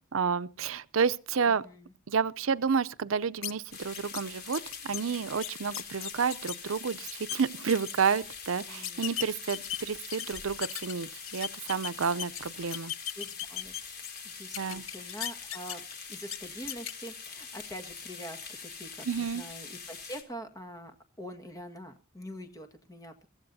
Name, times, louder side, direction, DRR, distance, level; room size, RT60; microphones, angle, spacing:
voice 1, 0.0-1.6 2.1-12.9 14.6-14.8 19.1-19.4, right 6 dB, 75° right, 0.6 m, -30 dB
voice 2, 1.5-1.9 8.6-9.1 13.2-13.7 14.2-23.3, equal, 15° left, 1.7 m, -45 dB
sound 1, 3.4-3.5 3.9-4.2 4.5-6.6 6.9-7.4 7.7-8.1 8.8-10.9 11.3-12.4 12.7-14.2 14.5-15.9 16.3-16.4 16.7-16.9, left 11 dB, 70° left, 0.8 m, -36 dB
sound 2, 3.7-20.2, left 5 dB, 50° left, 3.5 m, -44 dB
23.5 x 14.5 x 2.7 m
head